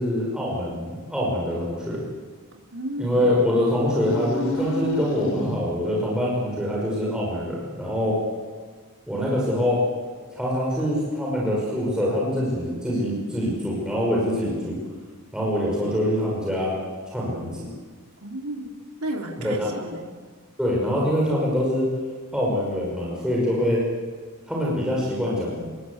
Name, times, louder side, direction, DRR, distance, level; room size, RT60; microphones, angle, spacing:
voice 1, 0.0-2.0 3.0-8.2 9.1-9.8 10.3-14.8 15.3-16.8 17.1-17.7 19.4-19.7 20.6-21.9 22.3-23.8 24.5-25.7, left 1 dB, 5° right, -5 dB, 5.4 m, -24 dB
voice 2, 2.5-3.3 18.2-18.7 19.0-20.1, right 1 dB, 85° right, 1 dB, 3.5 m, -33 dB
sound 1, 4.0-5.9, equal, 75° left, 4.5 m, -30 dB
27.0 x 20.5 x 8.1 m, 1.6 s
head